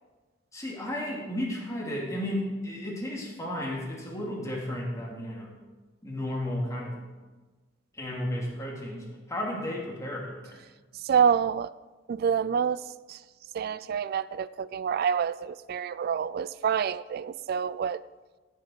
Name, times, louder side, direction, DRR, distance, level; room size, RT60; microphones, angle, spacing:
voice 1, 0.5-5.5 6.0-7.0 7.9-10.6, left 1 dB, 15° left, -3 dB, 2.5 m, -33 dB
voice 2, 11.0-11.7 12.1-12.8 13.1-13.2 13.5-18.0, right 7 dB, 55° right, 17 dB, 0.3 m, -27 dB
15.0 x 6.6 x 4.5 m, 1.3 s
head